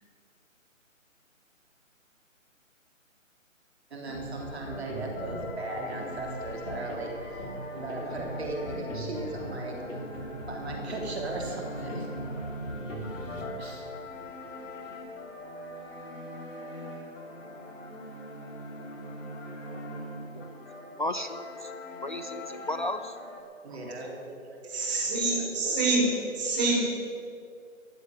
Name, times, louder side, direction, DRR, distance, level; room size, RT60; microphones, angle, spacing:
voice 1, 3.9-9.8 10.4-12.1 13.6-13.9 23.6-24.4 24.7-25.0 25.4-25.8, right 2 dB, 50° right, 0 dB, 3.4 m, -37 dB
sound 1, 4.1-23.4, equal, 65° left, 3.4 m, -39 dB
voice 2, 21.0-21.7 22.0-23.2, left 1 dB, 40° left, 9 dB, 0.5 m, -34 dB
voice 3, 24.7-26.8, right 3 dB, 30° right, -1 dB, 4.3 m, -26 dB
14.5 x 7.8 x 9.6 m, 2.4 s
figure-of-eight pair, 155°, 40 cm